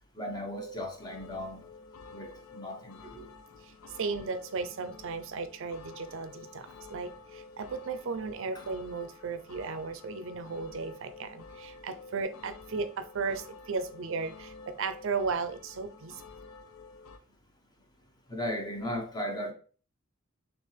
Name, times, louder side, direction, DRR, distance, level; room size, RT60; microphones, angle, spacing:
voice 1, 0.1-1.6 2.1-3.3 8.5-8.6 18.3-19.5, equal, 20° left, 0.9 m, -36 dB
sound 1, 1.0-17.2, left 4 dB, 80° left, 0.5 m, -50 dB
voice 2, 3.6-16.2, right 4 dB, 65° right, 0.5 m, -35 dB
6.6 x 2.5 x 3.2 m
head